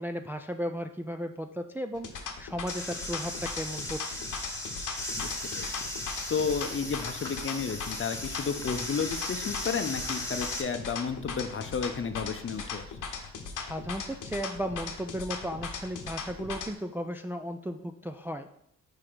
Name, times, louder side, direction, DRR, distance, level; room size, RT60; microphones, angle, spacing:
voice 1, 0.0-4.2 13.6-18.5, equal, 5° right, 6 dB, 0.4 m, -35 dB
sound 1, 1.9-16.7, left 5 dB, 65° left, 0.9 m, -38 dB
sound 2, 2.7-10.6, left 1 dB, 10° left, 1.6 m, -37 dB
voice 2, 6.3-13.0, left 5 dB, 40° left, 9 dB, 0.7 m, -32 dB
4.8 x 4.3 x 5.0 m, 0.75 s
supercardioid pair, 55°, 33 cm